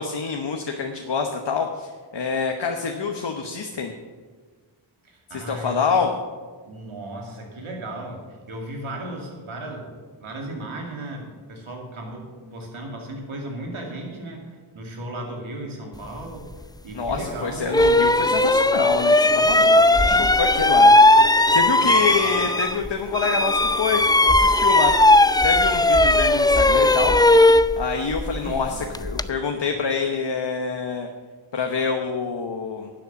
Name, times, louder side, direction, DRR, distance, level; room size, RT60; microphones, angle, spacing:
voice 1, 0.0-3.9 5.3-6.1 16.9-21.0 21.5-24.9 25.4-27.2 27.8-31.1 31.5-32.9, left 5 dB, 60° left, 3 dB, 1.1 m, -26 dB
voice 2, 5.0-6.0 6.6-16.5 16.8-17.7 28.4-29.1, right 1 dB, 90° right, 1 dB, 2.4 m, -36 dB
sound 1, 17.1-17.2 17.7-22.9 23.1-29.3, left 2 dB, 10° left, 0.4 m, -17 dB
11.5 x 7.8 x 7.0 m, 1.5 s
cardioid pair, 45°, 47 cm